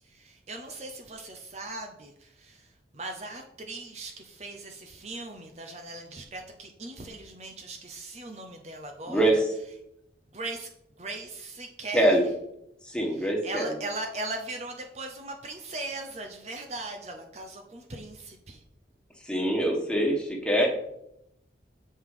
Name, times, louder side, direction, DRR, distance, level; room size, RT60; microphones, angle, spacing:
voice 1, 0.0-9.4 10.3-10.7 11.0-12.3 13.1-18.6, right 2 dB, 35° right, 4 dB, 0.7 m, -39 dB
voice 2, 9.1-9.5 11.9-12.2 12.8-13.7 19.2-20.7, right 1 dB, 5° left, 0 dB, 1.4 m, -24 dB
7.8 x 5.5 x 4.9 m, 0.81 s
head